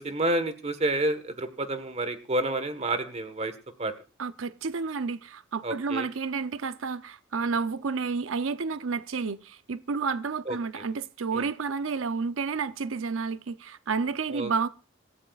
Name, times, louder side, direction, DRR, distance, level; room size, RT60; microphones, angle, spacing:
voice 1, 0.0-3.9 5.6-6.1 10.5-10.8 11.3-11.5 14.3-14.7, right 2 dB, 35° right, 1.4 m, -30 dB
voice 2, 4.2-14.7, right 5 dB, 75° right, 0.7 m, -30 dB
26.5 x 14.5 x 2.4 m
head